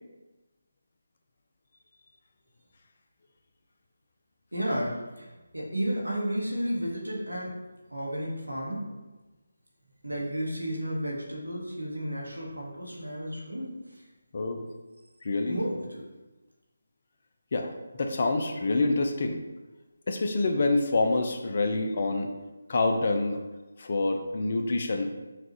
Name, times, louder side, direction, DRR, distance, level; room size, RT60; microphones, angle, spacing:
voice 1, 4.5-7.5 7.9-8.9 10.0-13.7 15.5-16.0, equal, 90° right, -3 dB, 1.3 m, -32 dB
voice 2, 15.2-15.6 17.5-19.4 20.1-22.3 22.7-23.4 23.8-25.1, left 2 dB, 45° left, 5 dB, 0.5 m, -27 dB
5.9 x 2.4 x 3.0 m, 1.1 s
figure-of-eight pair, 155°, 0 cm